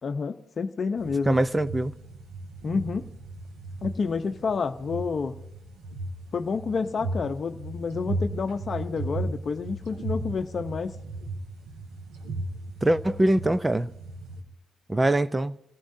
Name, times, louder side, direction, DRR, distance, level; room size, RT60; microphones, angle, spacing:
voice 1, 0.0-1.4 2.6-3.1 3.8-5.4 6.3-11.0, left 5 dB, 50° left, 0.7 m, -29 dB
sound 1, 1.0-14.4, right 2 dB, 90° right, 2.7 m, -36 dB
voice 2, 1.3-1.9 12.8-13.9 14.9-15.5, right 1 dB, 15° right, 0.5 m, -23 dB
29.5 x 15.5 x 2.7 m
cardioid pair, 70°, 0 cm